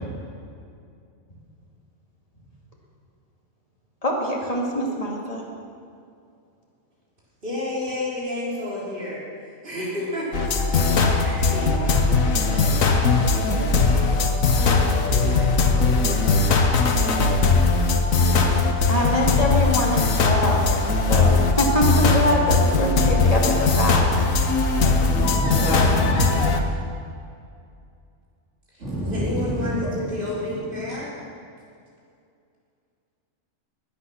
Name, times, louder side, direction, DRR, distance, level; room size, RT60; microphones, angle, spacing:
voice 1, 4.0-5.4 18.9-24.0, equal, 30° left, -2 dB, 2.5 m, -24 dB
voice 2, 7.4-9.2 9.6-16.7 28.7-31.1, left 1 dB, 40° right, -7 dB, 4.1 m, -32 dB
sound 1, 10.3-26.6, left 4 dB, 85° left, 1.5 m, -20 dB
voice 3, 25.1-26.3 28.8-30.0 30.8-30.9, equal, 65° right, -11 dB, 3.7 m, -26 dB
20.0 x 9.4 x 6.1 m, 2.4 s
omnidirectional pair, 1.4 m